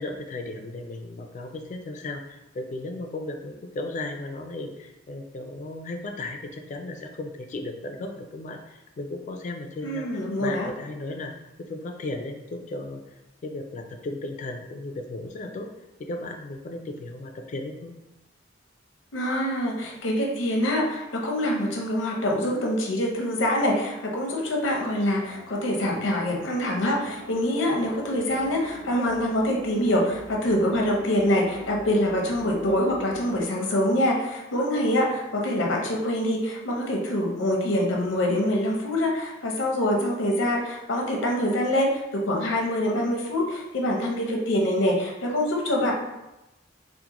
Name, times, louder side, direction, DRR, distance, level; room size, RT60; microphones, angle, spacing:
voice 1, 0.0-11.3 11.6-15.7 16.0-18.0, left 2 dB, 40° left, 4 dB, 0.3 m, -35 dB
voice 2, 9.8-10.7 19.1-45.9, left 1 dB, 80° left, 0 dB, 0.6 m, -25 dB
sound 1, 24.6-33.4, left 1 dB, 20° right, 0.6 m, -44 dB
3.6 x 2.1 x 2.9 m, 0.97 s
head